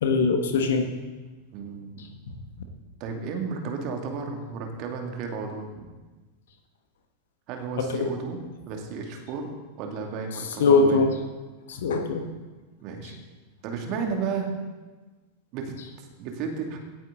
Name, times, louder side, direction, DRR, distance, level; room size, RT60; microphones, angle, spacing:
voice 1, 0.0-0.9 7.9-8.1 10.6-11.1 11.7-12.2, left 4 dB, 60° left, 5 dB, 1.4 m, -21 dB
voice 2, 1.5-1.9 3.0-5.9 7.5-8.4 8.7-11.0 12.8-13.2 13.6-14.5 15.5-16.8, right 5 dB, 40° right, 2 dB, 2.4 m, -33 dB
17.5 x 9.0 x 3.9 m, 1.3 s
figure-of-eight pair, 90°, 0 cm